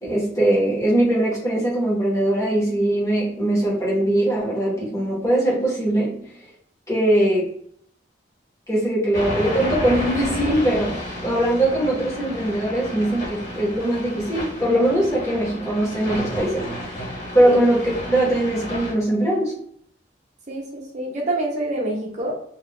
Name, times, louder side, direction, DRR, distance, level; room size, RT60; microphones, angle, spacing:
voice 1, 0.0-6.3 6.9-7.5 8.7-16.9 17.3-19.5, right 1 dB, 15° left, -5 dB, 1.0 m, -21 dB
sound 1, 9.1-18.9, equal, 40° left, 1.4 m, -31 dB
voice 2, 20.5-22.4, right 1 dB, 40° right, -3 dB, 0.7 m, -27 dB
2.4 x 2.3 x 3.5 m, 0.64 s
head